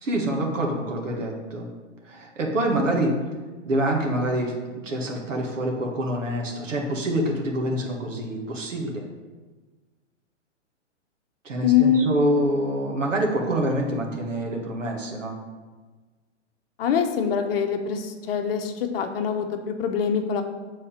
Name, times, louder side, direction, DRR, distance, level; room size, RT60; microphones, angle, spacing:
voice 1, 0.0-1.7 2.0-3.1 3.6-4.5 4.8-9.0 11.4-15.4, right 1 dB, 80° right, 1 dB, 1.7 m, -26 dB
voice 2, 11.6-12.1 16.8-20.4, left 7 dB, 50° left, 5 dB, 1.0 m, -23 dB
7.5 x 4.2 x 6.7 m, 1.3 s
hypercardioid pair, 130°, 37 cm